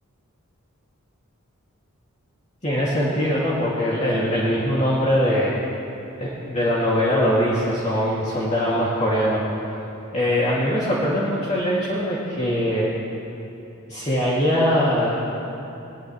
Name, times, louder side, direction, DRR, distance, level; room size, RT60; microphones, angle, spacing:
voice 1, 2.6-5.6 6.2-9.4 10.1-12.9 13.9-15.2, equal, 30° left, -8 dB, 2.3 m, -22 dB
21.5 x 20.0 x 3.2 m, 2.9 s
head